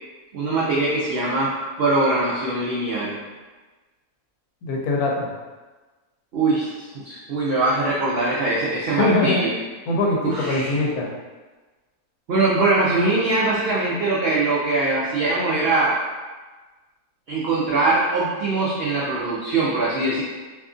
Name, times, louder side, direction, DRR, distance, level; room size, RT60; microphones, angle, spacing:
voice 1, 0.3-3.2 6.3-9.5 10.2-10.7 12.3-16.0 17.3-20.2, right 2 dB, 85° right, -7 dB, 0.5 m, -22 dB
voice 2, 4.6-5.3 9.0-9.4 9.9-11.1, left 2 dB, 80° left, -2 dB, 1.0 m, -22 dB
2.7 x 2.4 x 2.4 m, 1.3 s
omnidirectional pair, 1.6 m